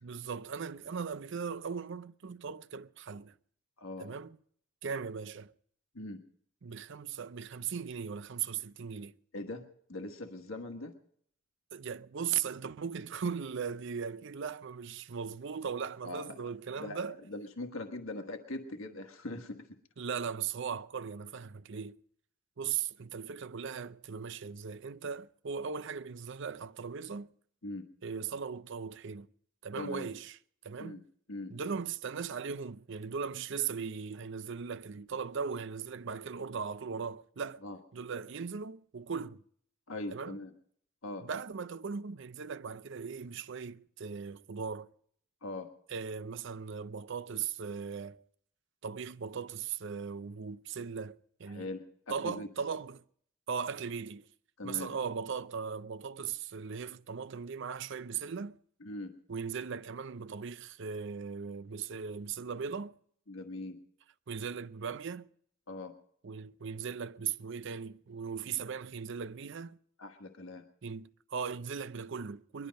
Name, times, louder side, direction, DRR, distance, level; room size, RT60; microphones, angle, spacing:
voice 1, 0.0-3.3 4.0-4.4 4.8-5.5 6.6-9.1 11.7-17.2 20.0-22.0 22.6-27.3 28.0-29.3 29.6-30.4 30.6-31.0 31.5-37.6 37.9-39.4 40.1-40.4 41.2-44.9 45.9-48.2 48.8-51.7 52.1-53.0 53.5-54.2 54.6-58.6 59.3-63.0 64.3-65.3 66.2-69.8 70.8-72.7, right 6 dB, 60° right, 0.5 m, -38 dB
voice 2, 3.8-4.1 5.9-6.2 9.3-9.6 9.9-10.9 16.0-16.4 16.8-19.7 27.6-27.9 29.7-30.1 30.8-31.0 31.3-31.5 37.6-37.8 39.9-40.5 41.0-41.3 45.4-45.7 51.5-52.5 54.6-54.9 58.8-59.1 63.3-63.8 65.7-66.0 70.0-70.6, left 2 dB, 75° left, 1.5 m, -41 dB
21.5 x 12.0 x 5.3 m
head